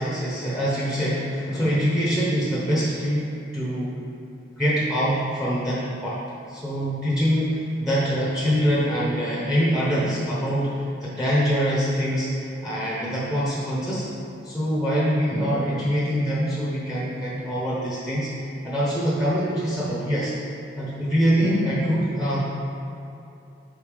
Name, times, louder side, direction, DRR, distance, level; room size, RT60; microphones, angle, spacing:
voice 1, 0.0-4.0 4.6-6.2 6.5-14.1 14.4-18.3 18.6-20.3 20.8-22.4, equal, 5° right, -7 dB, 0.9 m, -24 dB
5.4 x 3.9 x 5.0 m, 2.7 s
head